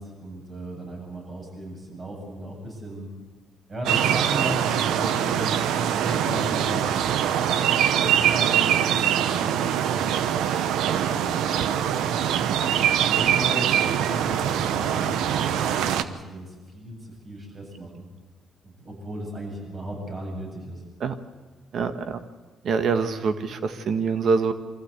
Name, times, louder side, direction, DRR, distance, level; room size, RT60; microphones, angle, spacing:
voice 1, 0.0-3.1 3.7-10.1 10.7-12.3 13.1-17.0 17.2-18.1 18.6-20.8, right 1 dB, 35° right, 0 dB, 7.7 m, -36 dB
sound 1, 3.9-16.0, right 10 dB, 85° right, 0.8 m, -23 dB
voice 2, 21.7-22.2 22.6-24.5, right 5 dB, 60° right, 9 dB, 1.5 m, -25 dB
24.0 x 14.5 x 8.2 m, 1.3 s
cardioid pair, 90°, 0 cm